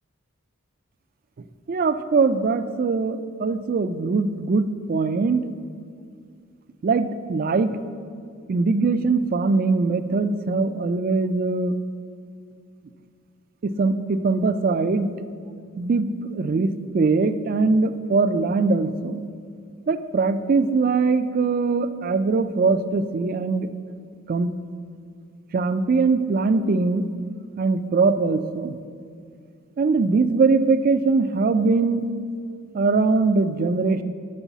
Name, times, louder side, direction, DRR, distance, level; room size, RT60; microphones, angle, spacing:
voice 1, 1.7-5.5 6.8-7.8 8.5-11.8 13.6-15.2 15.8-19.2 19.9-23.7 24.3-24.5 25.5-27.1 27.6-28.8 29.8-32.1 32.7-34.0, right 4 dB, 40° right, 11 dB, 0.3 m, -21 dB
6.3 x 5.5 x 7.1 m, 2.2 s
head